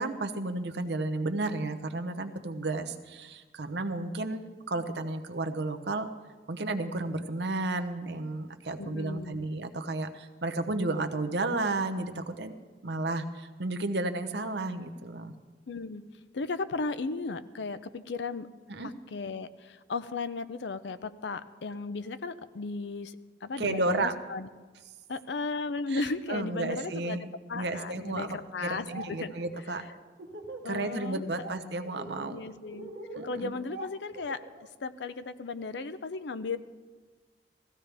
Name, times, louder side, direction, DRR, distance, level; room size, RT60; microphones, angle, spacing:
voice 1, 0.0-6.1 6.5-12.5 12.8-15.3 18.7-18.9 23.6-24.1 25.9-26.0 26.3-27.3 27.5-29.8 30.6-32.4 33.1-33.5, right 2 dB, 70° right, 8 dB, 0.9 m, -32 dB
voice 2, 8.8-9.5 15.7-16.0 16.3-18.5 18.8-24.5 25.1-27.2 27.5-29.3 29.8-29.9 30.6-31.2 32.3-32.9 33.2-36.6, left 3 dB, 75° left, 13 dB, 0.6 m, -35 dB
Laughter, 28.6-29.1 29.4-30.8 31.1-31.5 31.8-34.7, right 2 dB, 90° right, 1.6 m, -43 dB
16.0 x 15.0 x 3.4 m, 1.4 s
head